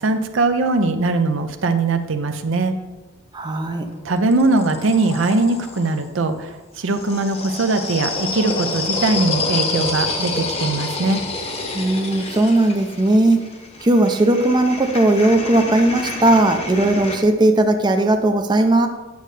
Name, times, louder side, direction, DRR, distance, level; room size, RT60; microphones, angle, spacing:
voice 1, 0.0-2.7 4.0-11.2, right 3 dB, 65° right, 7 dB, 0.6 m, -20 dB
voice 2, 3.3-3.9 11.7-13.4 13.8-18.9, right 1 dB, 20° right, 5 dB, 0.5 m, -17 dB
sound 1, 3.6-6.0 6.8-17.2, left 3 dB, 30° left, 0.9 m, -28 dB
9.4 x 6.5 x 3.3 m, 1.2 s
head